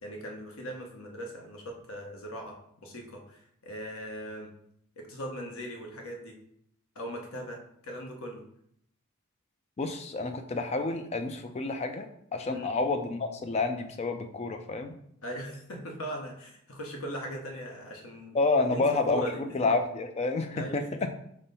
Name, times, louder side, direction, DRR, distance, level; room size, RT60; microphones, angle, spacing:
voice 1, 0.0-4.5 5.0-6.3 6.9-8.4 12.5-12.7 15.2-18.4 18.6-19.6 20.6-21.1, equal, 65° left, 2 dB, 0.9 m, -39 dB
voice 2, 9.8-14.9 18.3-21.1, left 3 dB, 30° left, 7 dB, 0.3 m, -29 dB
5.3 x 2.1 x 4.0 m, 0.71 s
head